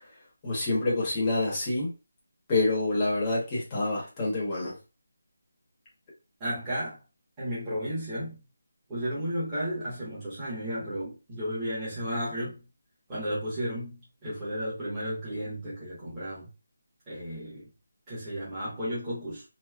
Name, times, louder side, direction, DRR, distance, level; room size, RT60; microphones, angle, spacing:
voice 1, 0.4-1.9 2.5-4.7, left 2 dB, 15° left, 0.9 m, -27 dB
voice 2, 6.4-7.0 7.4-8.4 8.9-12.6 13.1-16.5 17.1-17.7 18.1-19.4, equal, 10° right, 1.1 m, -33 dB
3.0 x 2.8 x 2.3 m
figure-of-eight pair, 175°, 0 cm